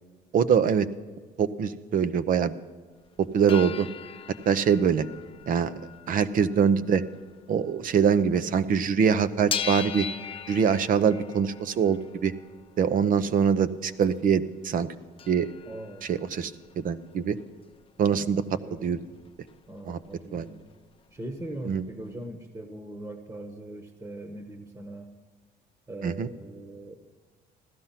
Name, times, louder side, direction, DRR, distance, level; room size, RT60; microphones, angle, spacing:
voice 1, 0.3-0.9 1.4-2.5 3.2-3.9 4.5-5.0 5.5-5.7 6.1-7.0 7.5-10.1 10.5-12.3 12.8-14.9 15.3-15.5 16.0-17.4 18.0-19.0 19.9-20.0 20.3-20.5 21.6-21.8 26.0-26.3, right 7 dB, 55° right, 13 dB, 0.8 m, -24 dB
sound 1, 3.2-8.4 8.7-14.3 14.7-14.8 15.0-18.9 19.2-20.1 20.4-20.5 20.8-21.8 22.2-22.3, left 7 dB, 30° left, 0.6 m, -40 dB
voice 2, 15.6-16.1 18.6-19.0 19.7-20.7 21.1-25.1 25.9-27.0, right 1 dB, 20° right, 7 dB, 1.3 m, -40 dB
15.5 x 12.5 x 5.8 m, 1.5 s
cardioid pair, 110°, 17 cm